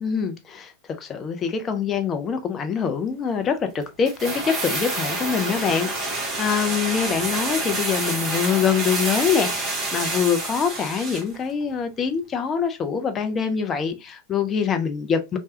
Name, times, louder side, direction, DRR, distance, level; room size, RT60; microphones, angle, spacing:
voice 1, 0.0-0.7 1.0-15.4, left 6 dB, 25° left, 0.5 m, -24 dB
sound 1, 4.1-11.4 11.6-11.7, right 2 dB, 20° right, 1.0 m, -28 dB
3.2 x 2.2 x 2.7 m
figure-of-eight pair, 90°, 0 cm